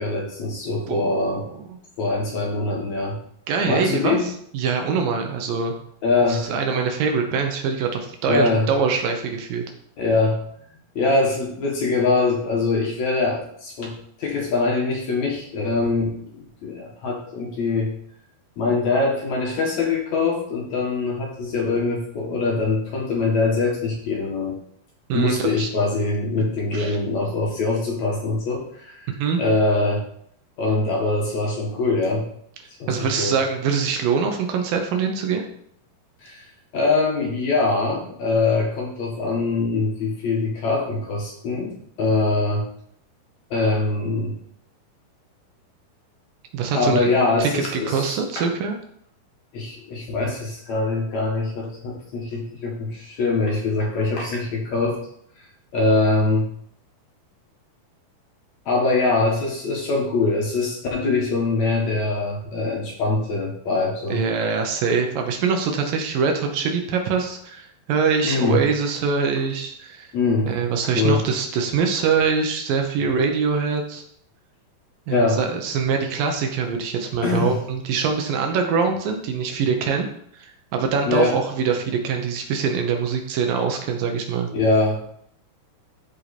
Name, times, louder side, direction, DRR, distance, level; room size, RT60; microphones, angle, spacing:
voice 1, 0.0-1.4 2.0-3.2 3.7-4.3 6.0-6.8 8.3-8.7 10.0-10.4 11.0-17.9 18.6-24.6 25.1-29.1 29.4-30.0 30.6-32.3 32.8-33.4 36.2-36.5 36.7-42.7 43.5-44.3 46.7-48.5 49.5-55.0 55.7-56.5 58.7-64.2 68.2-68.6 70.1-70.5 70.9-71.2 75.1-75.4 77.2-77.5 81.1-81.4 84.5-85.1, left 3 dB, 55° left, -1 dB, 2.5 m, -23 dB
voice 2, 0.9-1.4 1.7-1.8 3.5-5.7 6.3-9.6 25.1-25.7 26.7-27.0 29.1-29.4 32.9-35.4 46.5-47.1 47.4-48.8 64.1-70.1 70.4-74.0 75.1-80.1 80.3-84.5, right 5 dB, 75° right, 4 dB, 2.6 m, -23 dB
13.0 x 4.7 x 4.2 m, 0.66 s
omnidirectional pair, 4.3 m